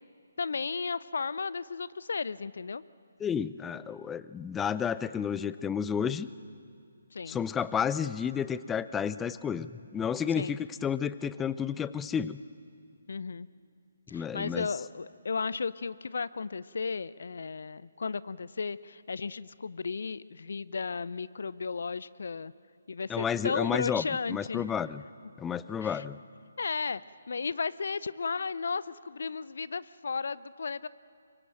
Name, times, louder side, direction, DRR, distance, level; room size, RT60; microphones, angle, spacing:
voice 1, 0.4-2.8 7.1-7.4 10.3-10.6 13.1-13.5 14.1-22.5 22.9-24.7 25.8-26.0 26.6-27.0 27.3-30.9, left 5 dB, 60° left, 18 dB, 0.6 m, -34 dB
voice 2, 3.2-6.3 7.3-12.4 14.1-14.7 23.1-24.0 24.3-25.0 25.4-26.2, left 7 dB, 10° left, 16 dB, 0.5 m, -31 dB
25.0 x 22.5 x 9.0 m, 2.5 s
figure-of-eight pair, 140°, 0 cm